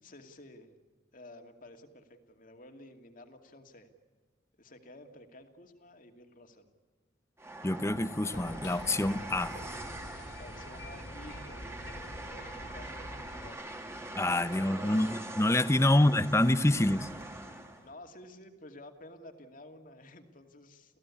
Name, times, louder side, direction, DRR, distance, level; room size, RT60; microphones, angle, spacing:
voice 1, 0.0-0.7 1.1-3.9 4.6-6.7 10.4-13.8 14.4-15.1 15.9-16.1 17.8-21.0, left 1 dB, 50° left, 2.4 m, -52 dB
Train, 7.4-17.9, right 1 dB, 15° right, 2.4 m, -43 dB
voice 2, 7.6-9.6 14.2-17.1, left 1 dB, 15° left, 0.8 m, -26 dB
sound 1, 8.3-13.5, left 1 dB, 85° left, 5.0 m, -46 dB
29.5 x 16.0 x 8.5 m
head